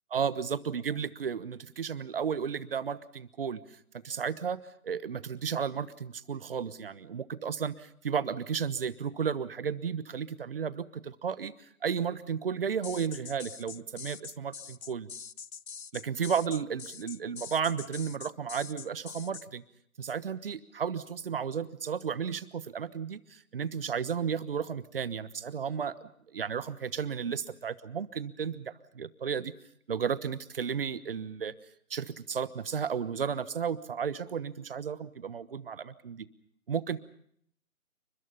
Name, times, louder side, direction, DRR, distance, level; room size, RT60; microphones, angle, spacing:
voice 1, 0.1-3.6 3.9-4.6 4.8-11.5 11.8-15.1 15.9-19.6 20.0-29.5 29.9-31.5 31.9-36.3 36.7-37.0, right 7 dB, 40° right, 17 dB, 1.2 m, -33 dB
sound 1, 12.8-19.5, left 6 dB, 75° left, 0.9 m, -44 dB
29.5 x 24.5 x 5.5 m, 0.67 s
figure-of-eight pair, 145°, 42 cm